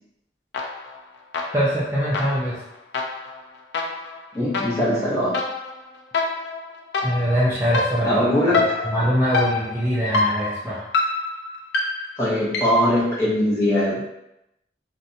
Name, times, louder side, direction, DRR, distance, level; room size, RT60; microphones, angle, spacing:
sound 1, 0.5-1.0 1.3-13.0, left 3 dB, 80° left, 0.4 m, -27 dB
voice 1, 1.5-2.6 7.0-8.2 8.8-10.9, equal, 15° right, -9 dB, 0.4 m, -22 dB
voice 2, 4.3-5.4 8.0-9.0 12.2-14.0, equal, 15° left, -8 dB, 0.8 m, -21 dB
2.5 x 2.1 x 2.6 m, 0.82 s
head